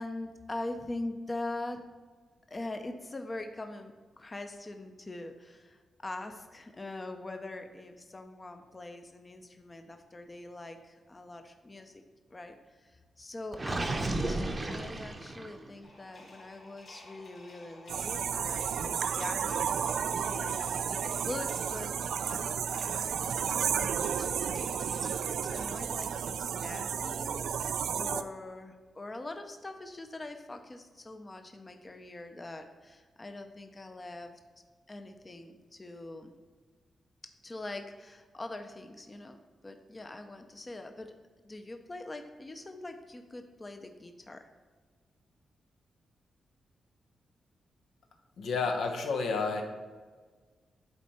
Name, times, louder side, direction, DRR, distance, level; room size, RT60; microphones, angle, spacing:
voice 1, 0.0-1.8 2.5-12.0 12.3-34.3 34.9-36.3 37.4-39.4 39.6-41.1 41.4-44.5, left 2 dB, 25° left, 6 dB, 0.6 m, -43 dB
Gurgling, 13.5-15.7, right 2 dB, 25° right, 0.7 m, -33 dB
sound 1, 15.8-25.7, left 2 dB, 65° left, 2.6 m, -54 dB
sound 2, 17.9-28.2, right 8 dB, 85° right, 0.4 m, -32 dB
voice 2, 48.4-49.6, left 4 dB, 90° left, 3 dB, 1.1 m, -30 dB
11.0 x 4.2 x 4.3 m, 1.4 s
cardioid pair, 110°, 0 cm